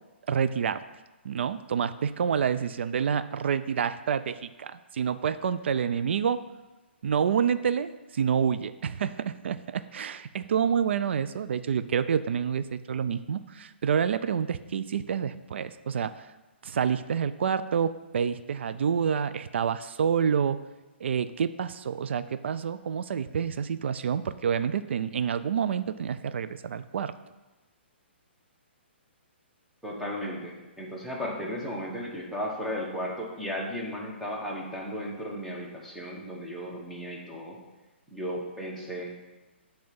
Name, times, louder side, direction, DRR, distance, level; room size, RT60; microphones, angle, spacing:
voice 1, 0.3-0.8 1.2-6.4 7.0-16.3 16.6-20.6 21.0-27.1, right 7 dB, 70° right, 13 dB, 0.3 m, -28 dB
voice 2, 29.8-37.6 38.1-39.1, equal, 5° right, -4 dB, 1.1 m, -35 dB
7.7 x 3.4 x 5.2 m, 1.1 s
hypercardioid pair, 145°, 6 cm